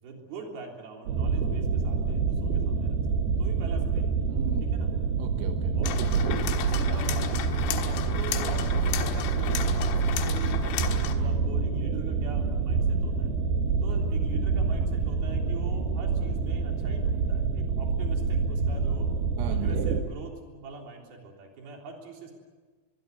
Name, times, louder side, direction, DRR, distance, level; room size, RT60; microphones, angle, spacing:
voice 1, 0.0-3.0 3.2-4.2 4.6-4.9 5.8-5.9 6.6-13.3 13.8-19.1 19.5-22.3, right 4 dB, 50° right, 1 dB, 5.1 m, -43 dB
sound 1, 1.1-20.0, right 5 dB, 65° right, 2.6 m, -27 dB
voice 2, 4.3-4.7 5.2-6.5 19.4-19.9, right 9 dB, 85° right, 5 dB, 3.9 m, -38 dB
sound 2, 5.8-11.2, left 10 dB, 80° left, 4.0 m, -34 dB
23.5 x 23.0 x 8.1 m, 1.4 s
omnidirectional pair, 5.9 m